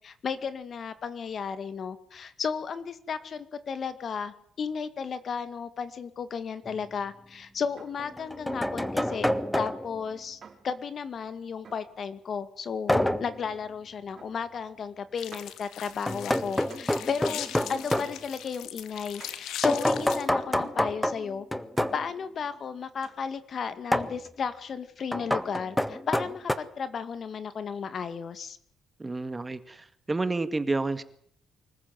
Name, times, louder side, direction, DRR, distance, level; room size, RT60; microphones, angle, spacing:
voice 1, 0.0-9.3 9.6-21.5 21.9-28.6, left 6 dB, 50° left, 12 dB, 2.1 m, -34 dB
sound 1, 6.7-6.8 8.0-10.0 12.9-13.4 16.1-18.2 19.6-22.1 23.9-24.2 25.1-26.6, left 1 dB, 5° left, 1.6 m, -28 dB
sound 2, 7.8-8.1 9.1-9.5 10.4-10.8 11.6-12.0 12.9-13.2 14.2-14.5 14.8-14.9 15.3-15.6 16.7-17.0 18.0-18.3 19.2-19.5 20.5-20.8 21.8-22.0 23.0-23.3 24.2-24.3, right 6 dB, 45° right, 5.3 m, -52 dB
sound 3, 15.2-20.2, left 11 dB, 85° left, 1.9 m, -40 dB
voice 2, 29.0-31.0, right 3 dB, 20° right, 12 dB, 1.9 m, -30 dB
25.0 x 14.5 x 9.4 m, 0.64 s
cardioid pair, 90°, 0 cm